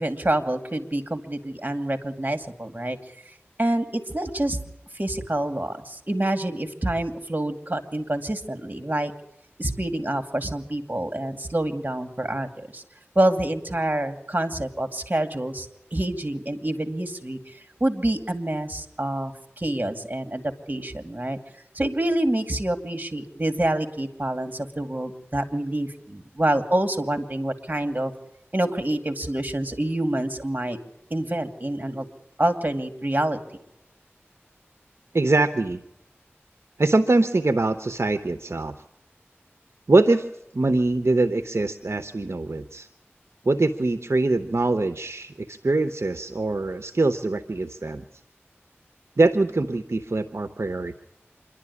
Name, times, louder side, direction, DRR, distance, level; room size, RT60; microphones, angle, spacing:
voice 1, 0.0-3.0 3.6-4.6 4.9-9.1 9.6-12.8 13.1-20.4 20.7-21.4 21.7-28.1 28.5-30.8 31.1-32.1 32.4-33.4, right 1 dB, 40° right, 7 dB, 2.4 m, -27 dB
voice 2, 35.1-35.8 36.8-38.7 39.9-40.3 40.5-42.9 43.4-48.0 49.2-51.0, right 2 dB, 70° right, 10 dB, 0.9 m, -23 dB
26.5 x 11.5 x 9.8 m, 0.86 s
wide cardioid pair, 45°, 5 cm